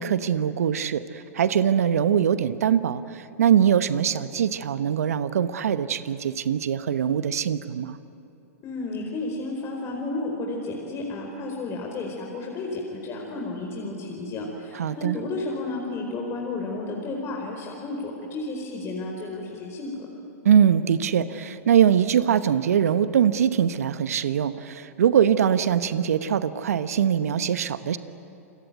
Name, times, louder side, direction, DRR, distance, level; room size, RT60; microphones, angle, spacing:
voice 1, 0.0-8.0 14.8-15.2 20.4-28.0, right 8 dB, 75° right, 13 dB, 1.0 m, -22 dB
voice 2, 8.6-20.1, left 2 dB, 35° left, 0 dB, 4.5 m, -32 dB
28.5 x 22.5 x 9.2 m, 2.8 s
hypercardioid pair, 105°, 8 cm